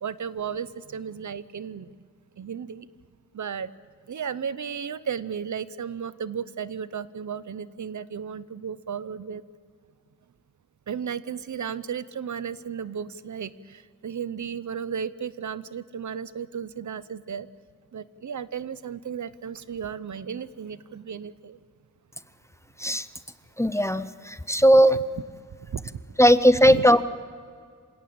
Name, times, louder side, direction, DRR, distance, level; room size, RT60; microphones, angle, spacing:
voice 1, 0.0-1.9 2.4-2.9 3.3-3.7 4.1-9.4 10.9-17.5 17.9-21.6 25.7-25.8 26.6-26.8, right 7 dB, 70° right, 15 dB, 0.8 m, -34 dB
voice 2, 23.6-25.0 26.2-27.0, equal, 10° left, 13 dB, 0.7 m, -18 dB
27.0 x 17.5 x 8.8 m, 2.1 s
wide cardioid pair, 120°, 31 cm